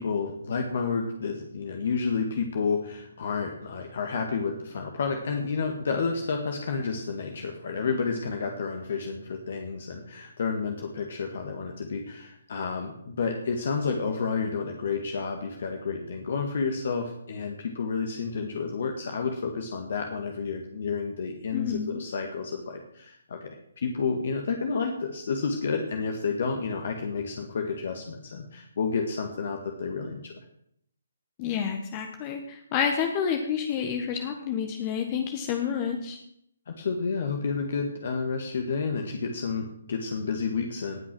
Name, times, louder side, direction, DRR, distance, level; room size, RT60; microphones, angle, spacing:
voice 1, 0.0-30.3 36.7-41.0, left 5 dB, 55° left, 4 dB, 1.8 m, -30 dB
voice 2, 21.5-22.0 31.4-36.2, left 7 dB, 30° left, 5 dB, 1.3 m, -29 dB
19.0 x 6.3 x 6.2 m, 0.73 s
figure-of-eight pair, 145°, 0 cm